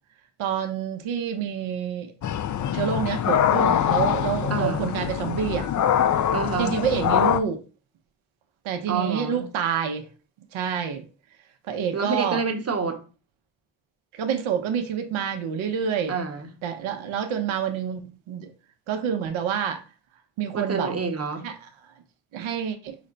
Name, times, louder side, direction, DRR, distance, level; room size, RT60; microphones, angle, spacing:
voice 1, 0.4-2.1 2.7-5.7 6.6-7.6 8.6-10.0 10.5-11.0 11.7-12.4 14.2-16.1 16.6-18.5 18.9-19.8 20.4-20.9 21.4-21.5 22.3-23.0, right 8 dB, 75° right, 0.8 m, -27 dB
sound 1, 2.2-7.4, left 9 dB, 40° left, 0.4 m, -23 dB
voice 2, 4.5-4.9 6.3-6.8 8.9-9.5 11.9-13.0 16.1-16.5 20.5-21.5, right 5 dB, 30° right, 0.9 m, -28 dB
5.0 x 2.1 x 3.8 m
supercardioid pair, 60°, 48 cm